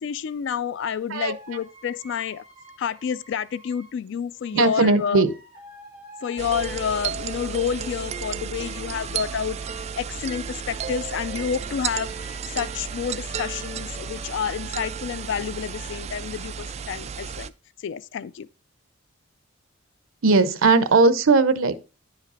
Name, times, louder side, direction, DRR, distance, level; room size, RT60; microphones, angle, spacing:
voice 1, 0.0-2.4 2.8-5.3 6.2-12.1 12.5-17.5 17.8-18.5, left 7 dB, 60° left, 0.3 m, -29 dB
sound 1, 1.1-4.0 4.4-16.0, right 1 dB, 10° right, 2.8 m, -49 dB
voice 2, 4.5-5.3 20.2-21.8, right 3 dB, 85° right, 0.7 m, -18 dB
sound 2, 6.4-17.5, right 6 dB, 35° right, 0.3 m, -33 dB
9.6 x 5.1 x 4.0 m
head